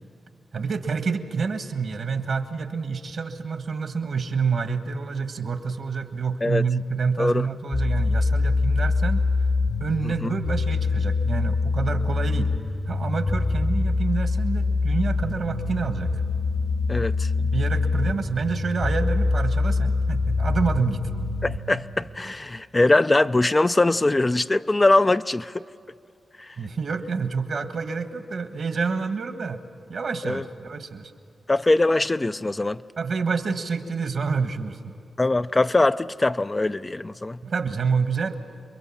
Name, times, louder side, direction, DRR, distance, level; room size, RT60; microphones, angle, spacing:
voice 1, 0.5-9.2 9.8-12.5 12.9-16.1 17.4-21.0 26.6-29.6 29.9-31.1 33.0-34.9 37.4-38.4, right 5 dB, 65° right, 8 dB, 1.5 m, -28 dB
sound 1, 7.7-21.6, left 3 dB, 85° left, 6.8 m, -24 dB
voice 2, 16.9-17.3 21.4-25.6 26.4-26.5 30.2-30.4 31.5-32.8 35.2-37.4, left 2 dB, 30° left, 11 dB, 0.5 m, -22 dB
28.5 x 22.0 x 7.3 m, 2.4 s
supercardioid pair, 40°, 0 cm